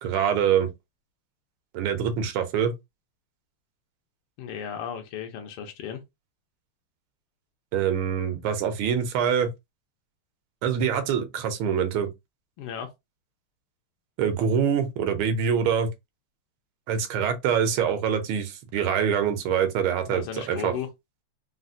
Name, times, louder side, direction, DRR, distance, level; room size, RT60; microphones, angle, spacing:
voice 1, 0.0-0.7 1.7-2.7 7.7-9.5 10.6-12.1 14.2-15.9 16.9-20.7, right 7 dB, 75° right, 1.5 m, -25 dB
voice 2, 4.4-6.0 12.6-12.9 20.1-20.9, left 8 dB, 80° left, 1.6 m, -35 dB
4.1 x 2.0 x 2.5 m
omnidirectional pair, 2.4 m